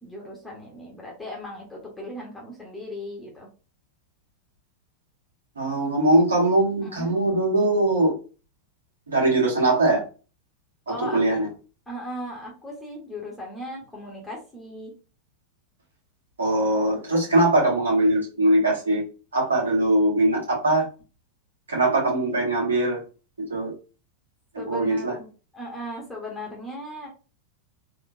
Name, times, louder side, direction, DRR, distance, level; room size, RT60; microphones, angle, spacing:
voice 1, 0.0-3.5 6.8-7.2 10.9-11.2 11.9-14.9 24.6-25.3 25.5-27.1, left 1 dB, 5° left, -2 dB, 1.4 m, -37 dB
voice 2, 5.6-8.2 9.1-10.0 10.9-11.5 16.4-19.0 19.3-20.8 21.7-23.0 23.5-23.7 24.7-25.1, right 1 dB, 70° right, -3 dB, 1.9 m, -21 dB
3.6 x 3.1 x 2.6 m, 0.34 s
figure-of-eight pair, 90°, 0 cm